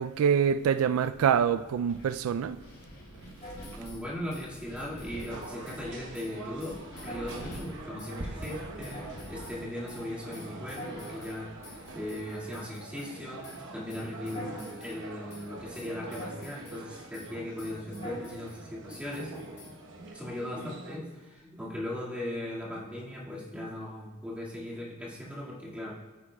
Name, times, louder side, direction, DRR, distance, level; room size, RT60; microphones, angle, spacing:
voice 1, 0.0-2.6, right 7 dB, 85° right, 0.3 m, -25 dB
Wind, 1.1-12.6, equal, 75° left, 2.7 m, -49 dB
sound 1, 3.4-4.0 4.3-5.8 6.1-6.3 6.6-7.7 8.0-9.6 9.9-13.1 13.4-13.6 13.9-15.0 15.3-15.5 15.7-16.8 17.1-17.3 17.6-18.6 18.9-19.7, equal, 35° left, 3.2 m, -46 dB
voice 2, 3.8-6.7 7.0-9.0 9.3-13.4 13.7-19.3 20.1-25.9, left 1 dB, 5° right, 1.9 m, -38 dB
sound 2, 5.3-21.0, right 2 dB, 60° right, 1.0 m, -44 dB
12.5 x 9.5 x 2.2 m
head